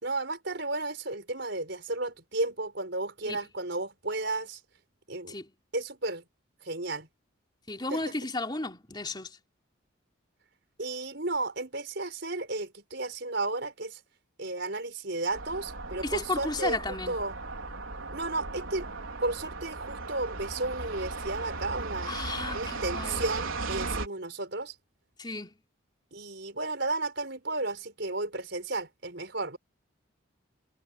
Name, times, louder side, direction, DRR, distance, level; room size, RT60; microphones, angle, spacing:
voice 1, 0.0-4.6 5.1-5.4 5.7-6.2 6.6-7.1 7.9-8.1 10.8-14.0 14.4-16.8 17.1-17.3 18.1-18.9 19.2-22.2 22.5-24.7 26.1-29.6, right 2 dB, 55° right, 5.8 m, -33 dB
voice 2, 7.7-9.4 16.0-17.2 22.0-23.3 25.2-25.5, left 2 dB, 20° left, 3.7 m, -34 dB
sound 1, 15.3-24.1, right 3 dB, 80° right, 4.4 m, -37 dB
head